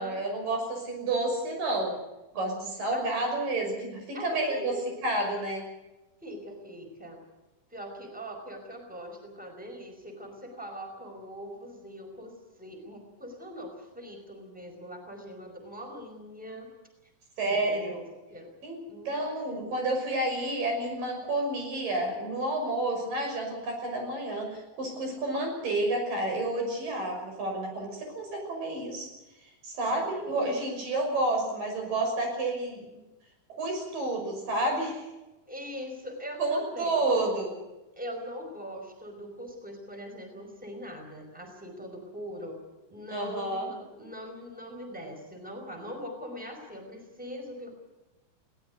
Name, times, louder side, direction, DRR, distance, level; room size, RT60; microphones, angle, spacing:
voice 1, 0.0-2.0 2.3-4.7 5.0-5.7 17.4-18.0 18.6-29.1 29.6-32.8 33.5-35.1 36.4-37.6 43.1-43.7, right 2 dB, 75° right, 2 dB, 7.8 m, -30 dB
voice 2, 4.1-4.9 6.2-7.2 7.7-16.7 17.5-18.0 18.3-18.5 18.9-19.2 29.9-30.3 35.5-37.3 38.0-42.6 42.9-47.7, equal, ahead, 4 dB, 4.8 m, -42 dB
21.0 x 18.5 x 8.2 m, 1.0 s
omnidirectional pair, 3.9 m